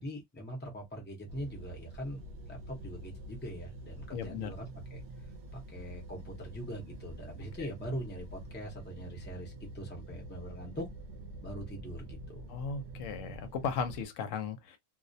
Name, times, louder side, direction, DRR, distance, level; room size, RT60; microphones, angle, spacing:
voice 1, 0.0-2.2 2.5-5.0 5.5-10.9 11.4-12.5, equal, 10° left, 0.5 m, -42 dB
sound 1, 1.3-14.0, right 1 dB, 70° right, 0.8 m, -47 dB
voice 2, 4.1-4.5 12.5-14.8, left 6 dB, 85° left, 0.9 m, -36 dB
2.3 x 2.1 x 2.6 m
omnidirectional pair, 1.3 m